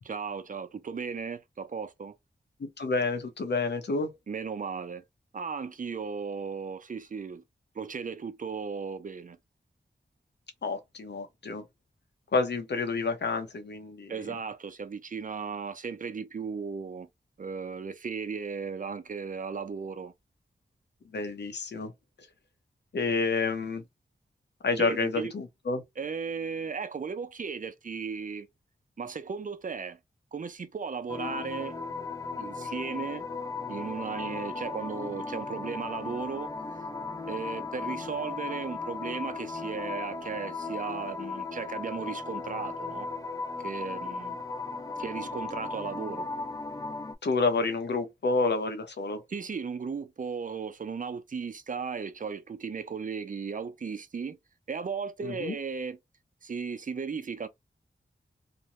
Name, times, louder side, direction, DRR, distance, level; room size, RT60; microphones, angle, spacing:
voice 1, 0.1-2.2 4.3-5.0 5.3-7.4 7.7-9.4 14.1-17.1 17.4-20.1 24.8-25.3 26.0-28.5 29.0-30.0 30.3-31.8 32.4-33.3 33.7-36.5 37.3-43.1 43.6-44.4 45.0-46.3 49.3-54.4 54.7-56.0 56.4-57.5, right 5 dB, 45° right, 0.5 m, -36 dB
voice 2, 2.6-4.1 10.6-11.6 12.3-14.4 21.1-21.9 22.9-23.8 24.6-25.8 47.2-49.2 55.2-55.5, left 3 dB, 70° left, 0.8 m, -29 dB
sound 1, 31.1-47.1, left 4 dB, 20° left, 0.4 m, -36 dB
2.6 x 2.1 x 3.0 m
wide cardioid pair, 65°, 18 cm